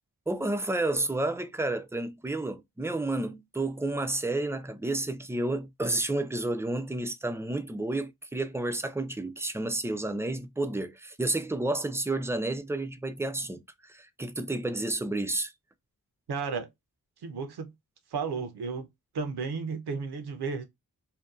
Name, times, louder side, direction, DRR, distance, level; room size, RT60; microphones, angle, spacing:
voice 1, 0.3-15.5, right 2 dB, 5° right, 0.3 m, -31 dB
voice 2, 16.3-16.7 17.2-17.7 18.1-18.9 19.1-20.6, right 5 dB, 85° right, 0.6 m, -33 dB
2.7 x 2.2 x 2.2 m
cardioid pair, 45°, 38 cm